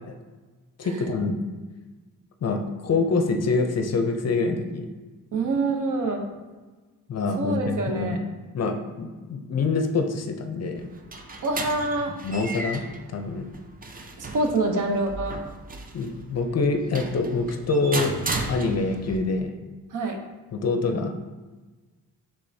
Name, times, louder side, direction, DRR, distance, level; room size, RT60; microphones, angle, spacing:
voice 1, 0.8-1.4 2.4-4.9 7.1-8.2 8.5-10.9 12.2-12.8 13.1-13.4 15.9-18.1 18.5-19.5 20.5-21.1, left 3 dB, 45° left, 5 dB, 0.6 m, -25 dB
voice 2, 5.3-6.3 7.4-8.2 11.4-12.1 14.2-15.4 19.9-20.2, right 2 dB, 60° right, 4 dB, 0.8 m, -26 dB
sound 1, 10.8-19.2, right 2 dB, 25° right, 0.5 m, -35 dB
5.3 x 3.5 x 2.7 m, 1.3 s
cardioid pair, 95°, 36 cm